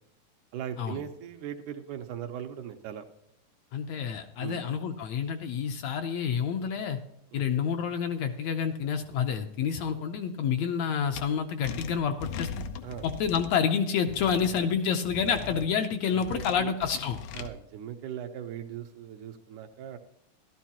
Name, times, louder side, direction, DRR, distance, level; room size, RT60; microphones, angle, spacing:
voice 1, 0.5-3.1 4.4-4.6 7.3-7.5 12.8-13.1 16.1-16.7 17.3-20.0, right 9 dB, 80° right, 5 dB, 2.3 m, -39 dB
voice 2, 3.7-7.0 7.3-12.5 13.0-17.2, left 7 dB, 75° left, 6 dB, 1.7 m, -28 dB
sound 1, 11.1-11.2 11.6-13.5 14.1-14.6 15.1-15.7 16.2-17.5, left 6 dB, 90° left, 2.3 m, -39 dB
14.0 x 12.5 x 2.9 m, 0.76 s
omnidirectional pair, 3.6 m